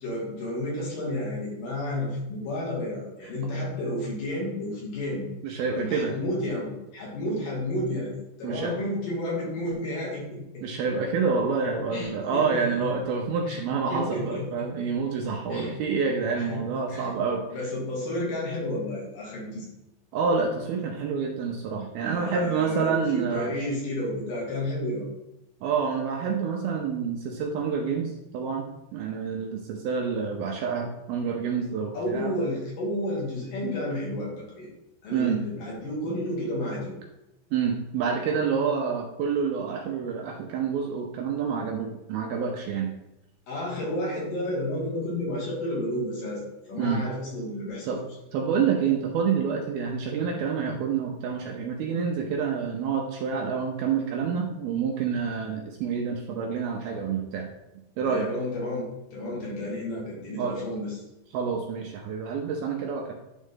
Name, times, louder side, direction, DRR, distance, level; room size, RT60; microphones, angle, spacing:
voice 1, 0.0-5.3 5.8-10.6 11.9-12.7 13.5-13.6 13.9-14.7 15.5-15.8 16.4-16.6 16.9-17.1 17.5-19.7 22.0-25.1 31.9-34.7 35.0-36.9 43.5-47.9 58.0-61.0, left 1 dB, 60° left, -5 dB, 3.2 m, -31 dB
voice 2, 5.4-6.2 8.4-8.8 10.6-17.5 20.1-23.5 25.6-32.3 35.1-35.4 37.5-42.9 46.8-47.0 47.8-48.0 48.3-57.5 58.0-58.3 60.4-60.5 61.3-63.1, right 6 dB, 80° right, 1 dB, 2.3 m, -28 dB
10.0 x 3.7 x 3.6 m, 0.92 s
omnidirectional pair, 4.8 m